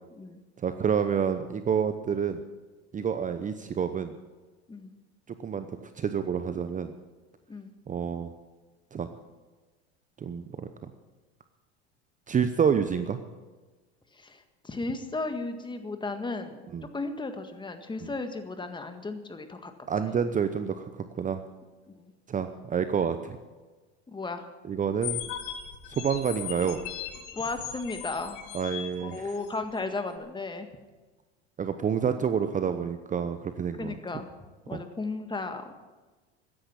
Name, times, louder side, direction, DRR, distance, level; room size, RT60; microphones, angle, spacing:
voice 1, 0.6-2.4 2.9-4.2 5.4-6.9 7.9-8.3 8.9-9.1 10.2-10.9 12.3-13.2 16.7-16.9 19.9-21.4 22.3-23.4 24.7-25.2 25.9-26.8 28.5-29.2 31.6-34.0 34.7-34.8, right 7 dB, 25° right, 10 dB, 0.9 m, -28 dB
voice 2, 14.1-16.6 16.9-19.7 21.9-22.1 24.1-24.5 27.3-28.4 29.0-30.7 33.8-34.3 34.7-35.7, left 3 dB, 15° left, 7 dB, 1.7 m, -35 dB
sound 1, 25.0-29.6, left 10 dB, 65° left, 2.2 m, -38 dB
14.0 x 10.0 x 8.7 m, 1.2 s
hypercardioid pair, 95°, 33 cm